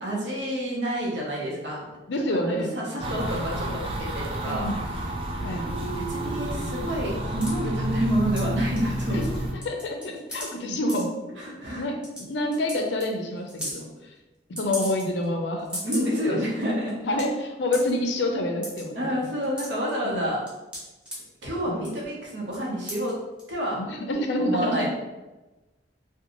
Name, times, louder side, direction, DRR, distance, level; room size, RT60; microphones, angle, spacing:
voice 1, 0.0-1.8 2.7-4.7 6.0-9.2 11.4-11.9 15.8-16.9 18.9-20.4 21.4-23.2 23.5-23.8 24.4-24.9, equal, 70° right, -3 dB, 0.8 m, -28 dB
voice 2, 2.1-2.7 3.1-3.4 4.4-4.8 5.4-5.6 9.1-9.4 9.6-11.2 11.8-13.9 14.6-15.8 16.3-16.4 17.0-19.3 20.0-20.3 21.7-21.9 23.8-24.9, left 1 dB, 65° left, 3 dB, 0.4 m, -28 dB
sound 1, 3.0-9.5, equal, 30° right, 0.3 m, -30 dB
sound 2, 7.4-7.5 8.4-8.5 8.8-9.4 9.6-10.5 10.9-11.0 11.7-11.8 12.0-12.2 12.5-12.8 13.0-13.1 13.5-13.8 14.6-15.2 15.6-16.1 16.6-16.7 16.9-17.2 17.7-17.9 18.6-18.8 19.2-19.9 20.5-21.2 21.8-22.1 22.5-22.6 22.9-23.1 23.4-23.5, equal, 5° right, 0.8 m, -35 dB
2.6 x 2.2 x 2.9 m, 1.1 s
head